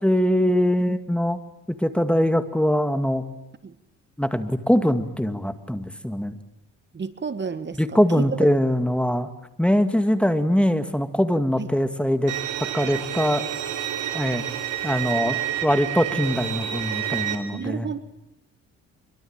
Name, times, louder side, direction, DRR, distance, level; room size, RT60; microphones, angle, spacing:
voice 1, 0.0-1.4 1.8-3.2 4.2-6.4 7.8-9.3 9.6-12.3 12.7-13.4 14.1-14.5 14.8-17.9, equal, 5° left, 10 dB, 2.1 m, -22 dB
voice 2, 6.9-8.4 11.6-11.7 17.5-18.0, right 5 dB, 35° right, 12 dB, 1.8 m, -31 dB
Bowed string instrument, 12.3-17.4, right 11 dB, 90° right, 3.3 m, -29 dB
25.5 x 23.5 x 8.9 m, 0.87 s
cardioid pair, 90°, 30 cm